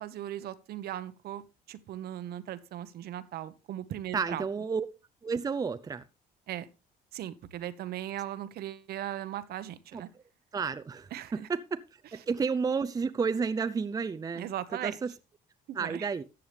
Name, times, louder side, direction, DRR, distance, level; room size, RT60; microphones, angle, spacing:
voice 1, 0.0-1.4 1.7-4.4 6.5-6.7 7.1-10.1 11.1-11.5 14.3-15.0 15.7-16.1, right 12 dB, 70° right, 1.0 m, -38 dB
voice 2, 4.1-4.8 5.2-6.0 9.9-10.0 10.5-11.1 11.5-11.8 12.1-14.5 14.8-15.1 15.7-16.2, right 5 dB, 20° right, 0.6 m, -31 dB
13.5 x 8.5 x 3.4 m
cardioid pair, 110°, 17 cm